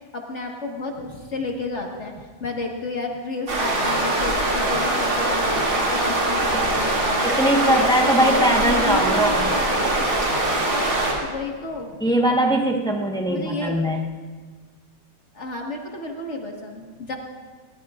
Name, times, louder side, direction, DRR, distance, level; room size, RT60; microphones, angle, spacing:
voice 1, 0.1-7.3 7.6-10.1 10.7-12.0 13.3-13.8 15.3-17.2, left 2 dB, 40° left, 0 dB, 1.7 m, -31 dB
sound 1, 3.5-11.1, right 2 dB, 75° right, 3.3 m, -22 dB
voice 2, 7.2-9.5 12.0-14.0, right 1 dB, 5° left, 0 dB, 0.7 m, -21 dB
21.5 x 19.0 x 2.5 m, 1.5 s
omnidirectional pair, 2.2 m